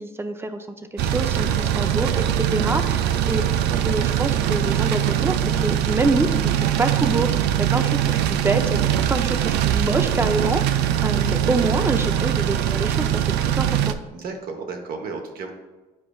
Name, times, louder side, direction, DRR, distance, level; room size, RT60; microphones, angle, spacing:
voice 1, 0.0-3.4 3.8-5.4 5.6-8.8 9.1-14.0, right 2 dB, 15° right, 8 dB, 0.5 m, -26 dB
sound 1, 1.0-13.9, right 10 dB, 85° right, 0.4 m, -22 dB
voice 2, 14.1-15.5, right 4 dB, 60° right, 4 dB, 1.1 m, -34 dB
9.3 x 4.9 x 2.3 m, 1.2 s
cardioid pair, 110°, 17 cm